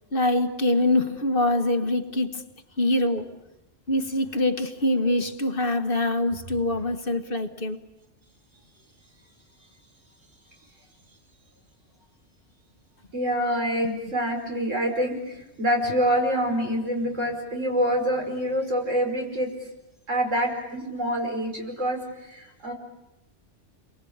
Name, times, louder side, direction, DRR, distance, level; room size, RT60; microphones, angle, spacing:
voice 1, 0.1-2.4 2.8-3.3 3.9-7.8, left 1 dB, 50° left, 1.6 m, -24 dB
voice 2, 13.1-19.5 20.1-22.7, equal, 90° right, 5.5 m, -26 dB
30.0 x 23.0 x 8.7 m
omnidirectional pair, 1.3 m